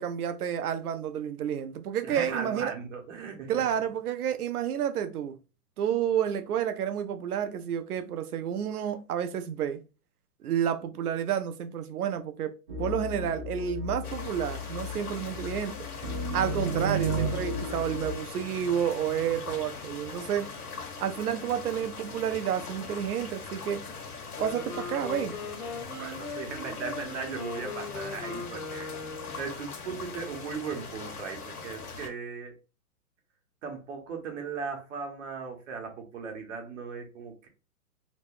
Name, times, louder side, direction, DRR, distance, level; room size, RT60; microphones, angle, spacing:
voice 1, 0.0-2.7 3.5-5.4 5.8-9.8 10.4-12.5 12.8-15.9 16.3-20.5 21.0-23.8 24.4-25.4, right 9 dB, 75° right, 0.7 m, -30 dB
voice 2, 2.0-3.5 26.0-29.0 29.4-32.5 33.6-37.5, right 5 dB, 55° right, 1.0 m, -37 dB
sound 1, 12.7-18.1, right 1 dB, 35° right, 0.5 m, -33 dB
sound 2, 14.0-32.1, left 4 dB, 75° left, 1.2 m, -41 dB
Wind instrument woodwind instrument, 24.3-29.5, left 3 dB, 10° left, 0.7 m, -39 dB
3.0 x 2.1 x 3.5 m
hypercardioid pair, 155°, 45 cm